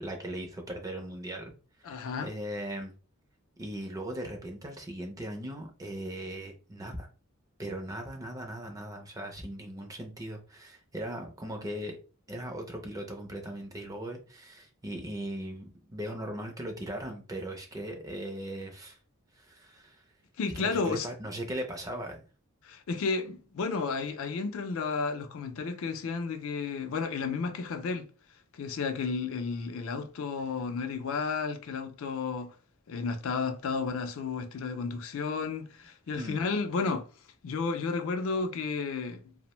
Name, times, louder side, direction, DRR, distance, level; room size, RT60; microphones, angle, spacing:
voice 1, 0.0-1.5 1.8-2.9 3.6-7.1 7.6-12.0 12.3-19.0 19.3-20.0 20.5-22.2 36.1-36.4, right 1 dB, 15° right, 0.4 m, -38 dB
voice 2, 1.9-2.3 20.4-21.1 22.6-28.1 28.5-32.5 32.9-37.0 37.4-39.2, left 4 dB, 60° left, 0.4 m, -32 dB
2.5 x 2.0 x 2.9 m
head